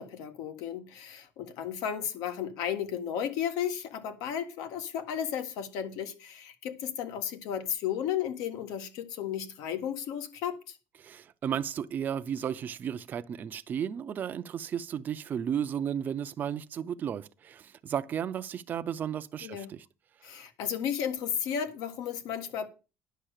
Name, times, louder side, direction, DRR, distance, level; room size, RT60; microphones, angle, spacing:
voice 1, 0.0-10.8 19.4-19.7 20.2-22.7, left 9 dB, 80° left, 1.6 m, -34 dB
voice 2, 11.0-19.8 20.2-20.4, right 8 dB, 30° right, 0.5 m, -34 dB
10.0 x 6.5 x 6.6 m
cardioid pair, 175°, 6 cm